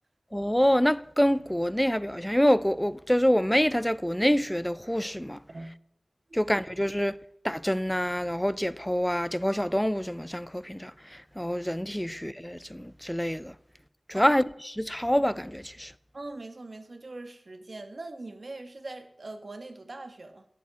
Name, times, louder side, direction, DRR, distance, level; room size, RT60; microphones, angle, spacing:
voice 1, 0.3-5.4 6.3-7.2 7.4-13.5 14.1-14.5 14.8-15.9, equal, 5° left, 0.5 m, -26 dB
voice 2, 16.1-20.4, right 2 dB, 60° right, 1.5 m, -41 dB
12.5 x 8.5 x 7.2 m
wide cardioid pair, 75°, 0 cm